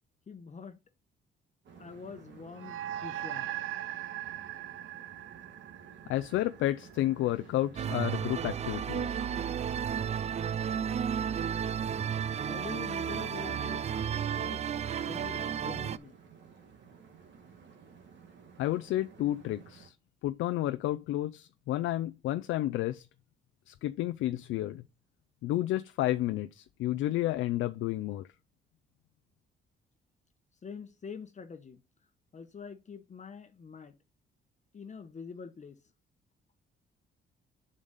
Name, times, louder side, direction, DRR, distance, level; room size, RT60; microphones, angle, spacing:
voice 1, 0.3-0.8 1.8-3.5 12.4-13.9 14.4-14.6 15.0-16.1 30.6-31.8 32.3-33.9 34.7-35.8, left 6 dB, 35° left, 1.0 m, -45 dB
sound 1, 1.6-19.9, right 6 dB, 65° right, 1.9 m, -54 dB
sound 2, 2.6-7.2, right 13 dB, 85° right, 0.5 m, -40 dB
voice 2, 6.1-9.3 18.6-19.9 20.2-23.1 23.7-24.8 25.4-28.3, left 14 dB, 85° left, 0.5 m, -31 dB
sound 3, 7.8-16.0, right 8 dB, 35° right, 0.4 m, -33 dB
7.3 x 5.1 x 4.1 m
cardioid pair, 90°, 20 cm